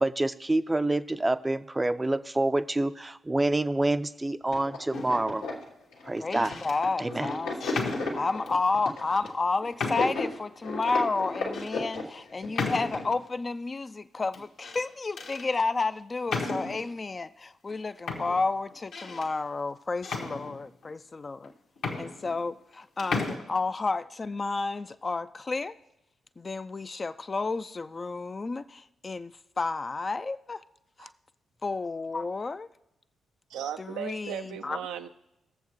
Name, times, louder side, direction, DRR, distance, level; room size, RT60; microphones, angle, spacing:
voice 1, 0.0-5.4 6.1-6.5 7.0-7.3, right 2 dB, 20° right, 13 dB, 0.5 m, -27 dB
sound 1, 4.5-13.0, left 3 dB, 80° left, 1.6 m, -35 dB
sound 2, 4.9-5.4 6.2-6.8 7.6-8.6 9.3-9.4 9.8-10.3 10.8-10.9 11.5-11.7 12.6-13.2 14.3-14.8 15.2-15.5 16.3-16.9 17.7-17.8 18.1-19.3 20.0-20.9 21.4-21.5 21.8-22.7 23.0-23.4, left 3 dB, 65° left, 1.4 m, -34 dB
voice 2, 6.2-7.7 8.1-21.5 22.0-25.7 26.4-30.6 31.0-31.1 31.6-32.7 33.8-34.8, left 3 dB, 35° left, 11 dB, 0.4 m, -31 dB
voice 3, 33.5-35.1, right 9 dB, 75° right, 8 dB, 0.5 m, -36 dB
19.5 x 7.2 x 3.1 m, 0.88 s
hypercardioid pair, 40°, 0 cm